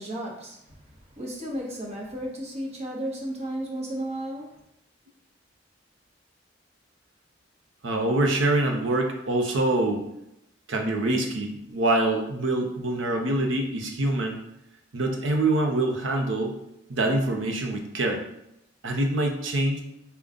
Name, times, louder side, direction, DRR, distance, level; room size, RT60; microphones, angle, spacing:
voice 1, 0.0-4.5, right 1 dB, 35° right, -2 dB, 1.0 m, -34 dB
voice 2, 7.8-10.0 10.7-14.4 14.9-16.5 16.9-18.2 18.8-19.8, right 2 dB, 85° right, 3 dB, 0.7 m, -25 dB
5.3 x 2.3 x 3.6 m, 0.81 s
head